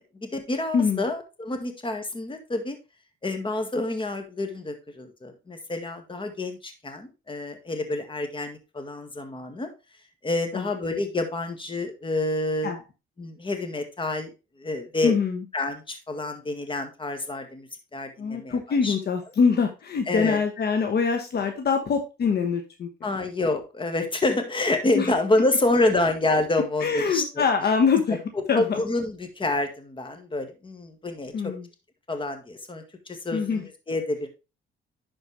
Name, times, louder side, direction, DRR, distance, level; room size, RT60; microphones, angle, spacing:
voice 1, 0.2-2.8 3.2-9.7 10.2-12.8 13.2-14.3 14.6-15.2 15.5-19.0 20.1-20.4 23.0-27.4 28.6-31.5 32.1-34.3, left 2 dB, 25° left, 6 dB, 1.8 m, -28 dB
voice 2, 0.7-1.0 10.5-10.6 12.6-12.8 15.0-15.4 18.2-22.9 24.9-25.1 26.8-28.2 28.5-28.8 31.3-31.7 33.3-33.7, left 5 dB, 55° left, 5 dB, 1.2 m, -24 dB
11.0 x 4.5 x 3.3 m, 0.28 s
cardioid pair, 90°, 20 cm